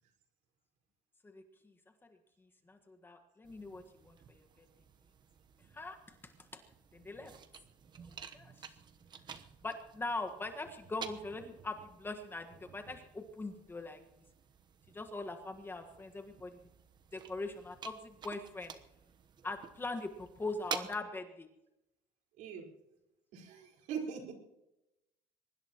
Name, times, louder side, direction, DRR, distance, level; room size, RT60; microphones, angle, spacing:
voice 1, 1.2-1.7 2.4-4.7 5.7-6.0 6.2-6.6 6.9-7.3 8.0-8.8 9.6-14.0 14.9-16.6 17.1-18.7 19.4-21.5, left 2 dB, 15° left, 5 dB, 1.5 m, -42 dB
sound 1, 3.4-21.0, right 7 dB, 35° right, 1.0 m, -50 dB
voice 2, 22.4-22.7 23.3-24.3, right 6 dB, 70° right, 1 dB, 4.5 m, -41 dB
23.5 x 20.5 x 3.0 m, 0.90 s
cardioid pair, 135°, 13 cm